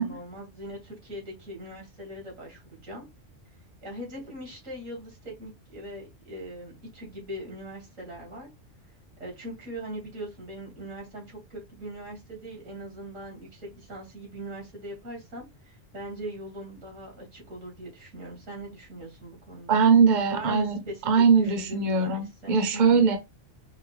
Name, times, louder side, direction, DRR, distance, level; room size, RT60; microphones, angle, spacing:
voice 1, 0.0-3.1 3.8-8.5 9.2-19.8 20.3-23.1, right 1 dB, 85° right, -1 dB, 2.5 m, -41 dB
voice 2, 19.7-20.8 21.1-23.2, right 5 dB, 45° right, 6 dB, 0.8 m, -21 dB
5.6 x 2.2 x 3.4 m, 0.23 s
omnidirectional pair, 1.3 m